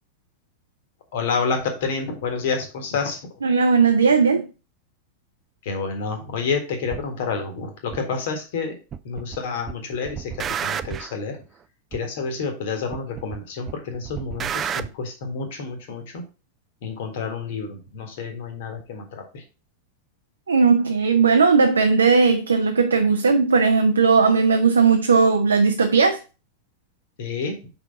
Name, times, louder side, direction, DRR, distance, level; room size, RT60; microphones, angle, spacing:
voice 1, 1.1-3.2 5.6-8.8 9.0-11.4 11.9-16.2 16.8-19.4 27.2-27.7, left 5 dB, 55° left, 1.6 m, -29 dB
voice 2, 3.4-4.5 20.5-26.2, right 5 dB, 75° right, 0.6 m, -17 dB
sound 1, 6.9-7.0 7.9-8.0 8.9-9.4 9.7-11.1 11.9-12.0 12.9-13.4 13.7-14.9, right 8 dB, 25° right, 0.4 m, -30 dB
5.5 x 4.1 x 5.5 m
figure-of-eight pair, 90°, 0 cm